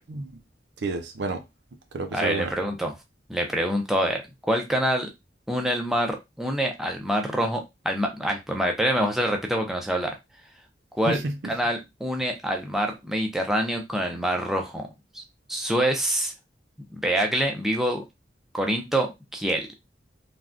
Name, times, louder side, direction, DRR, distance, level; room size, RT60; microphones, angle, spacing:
voice 1, 0.1-0.4 0.8-1.4 1.9-2.5 11.1-11.5, right 3 dB, 75° right, 0.5 m, -30 dB
voice 2, 2.1-2.9 3.3-4.2 4.5-5.1 5.5-10.1 10.9-11.2 11.5-14.9 15.1-15.2 15.5-16.3 16.9-18.0 18.5-19.7, equal, ahead, 0.4 m, -26 dB
3.3 x 2.2 x 2.5 m
head